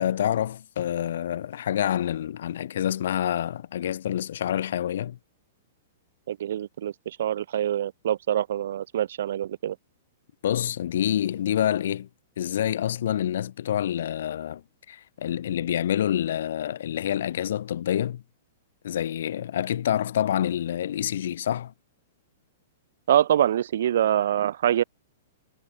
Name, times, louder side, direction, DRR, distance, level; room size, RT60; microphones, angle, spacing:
voice 1, 0.0-5.2 10.4-12.1 12.4-14.6 14.9-18.2 18.8-21.7, left 10 dB, 55° left, 7.2 m, -27 dB
voice 2, 6.3-9.8 23.1-24.8, right 11 dB, 55° right, 6.4 m, -25 dB
hypercardioid pair, 180°, 0 cm